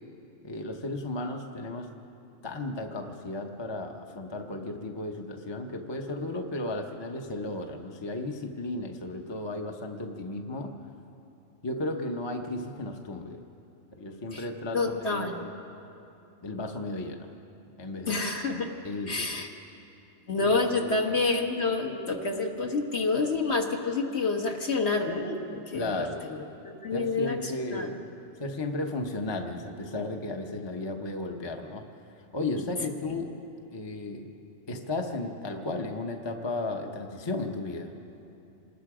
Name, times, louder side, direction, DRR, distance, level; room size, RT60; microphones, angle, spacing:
voice 1, 0.4-1.9 2.4-10.7 11.6-13.4 14.0-15.5 16.4-17.3 17.8-18.2 18.8-19.5 20.4-20.5 20.8-21.0 25.7-26.3 26.9-28.0 28.4-31.8 32.3-33.3 33.7-34.3 34.7-37.9, left 2 dB, 20° left, 3 dB, 0.9 m, -34 dB
voice 2, 14.7-15.3 18.1-18.7 19.1-19.5 20.3-26.0 26.3-27.9, left 3 dB, 55° left, 2 dB, 1.8 m, -28 dB
26.5 x 20.0 x 5.0 m, 2.9 s
omnidirectional pair, 1.4 m